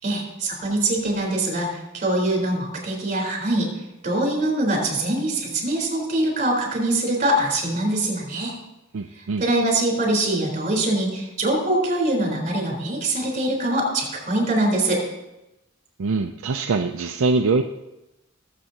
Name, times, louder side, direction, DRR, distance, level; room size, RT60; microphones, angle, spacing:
voice 1, 0.0-3.7 4.0-8.5 9.1-15.0, right 1 dB, 40° right, -1 dB, 4.0 m, -23 dB
voice 2, 8.9-9.4 16.0-17.6, right 3 dB, 70° right, 5 dB, 0.5 m, -23 dB
20.5 x 7.5 x 2.9 m, 0.95 s
head